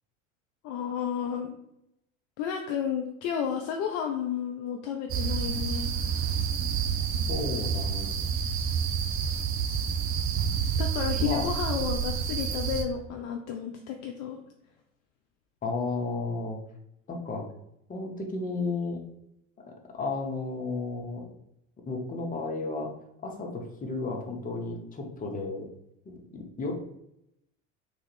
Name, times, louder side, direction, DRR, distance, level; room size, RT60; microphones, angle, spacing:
voice 1, 0.6-1.6 2.4-6.2 10.8-14.4, left 8 dB, 50° left, 3 dB, 0.4 m, -32 dB
sound 1, 5.1-12.8, right 7 dB, 35° right, 0.5 m, -29 dB
voice 2, 7.3-8.2 11.2-11.4 15.6-16.6 17.1-17.5 17.9-19.0 19.9-21.3 21.9-22.9 23.2-25.7 26.0-26.7, left 3 dB, 20° left, 1 dB, 0.8 m, -33 dB
3.3 x 2.4 x 3.3 m, 0.81 s
hypercardioid pair, 75°, 39 cm